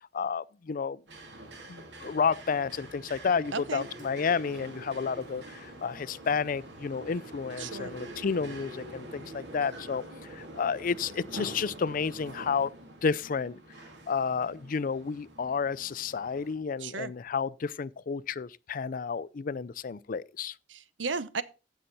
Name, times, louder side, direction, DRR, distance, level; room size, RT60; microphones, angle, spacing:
voice 1, 0.1-1.0 1.7-10.0 10.3-12.7 13.0-13.6 14.1-20.5, left 5 dB, 50° left, 0.4 m, -31 dB
sound 1, 1.1-16.5, right 1 dB, 70° right, 3.0 m, -45 dB
voice 2, 3.5-3.9 7.6-7.9 16.8-17.1 20.7-21.4, right 4 dB, 90° right, 0.9 m, -34 dB
15.5 x 5.7 x 4.0 m
head